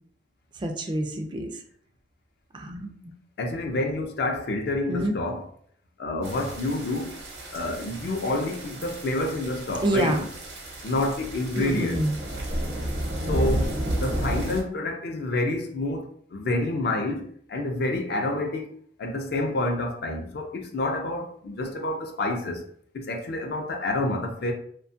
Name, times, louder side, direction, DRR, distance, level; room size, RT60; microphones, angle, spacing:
voice 1, 0.6-1.5 2.5-2.9 4.9-5.1 9.8-10.2 11.5-12.1, right 1 dB, 25° right, 0.3 m, -27 dB
voice 2, 3.4-5.5 6.0-7.2 7.5-10.2 10.8-12.0 13.3-13.7 14.0-18.7 19.0-22.7 22.9-24.5, left 2 dB, 60° left, 0.4 m, -28 dB
sound 1, 6.2-14.6, right 1 dB, 70° right, 0.8 m, -32 dB
2.7 x 2.2 x 2.6 m
head